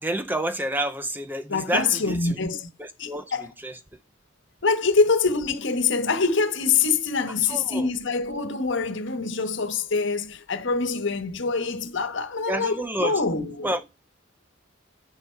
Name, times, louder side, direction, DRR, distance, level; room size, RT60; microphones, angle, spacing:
voice 1, 0.0-2.4 2.8-3.8 7.5-7.9 12.5-13.2 13.6-13.9, right 1 dB, 10° right, 0.6 m, -29 dB
voice 2, 1.5-2.7 3.0-3.5 4.6-13.7, left 4 dB, 65° left, 1.3 m, -25 dB
9.6 x 5.6 x 4.6 m
head